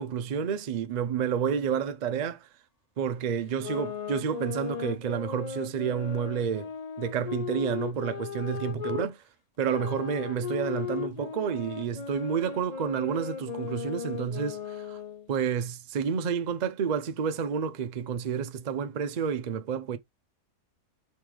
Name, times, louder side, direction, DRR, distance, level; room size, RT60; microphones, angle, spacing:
voice 1, 0.0-2.5 3.0-6.7 7.0-9.2 9.6-15.0 15.3-20.0, right 7 dB, 85° right, 0.3 m, -30 dB
sound 1, 3.5-9.1 9.7-15.3, left 7 dB, 85° left, 0.3 m, -37 dB
4.7 x 3.2 x 3.5 m
omnidirectional pair, 1.5 m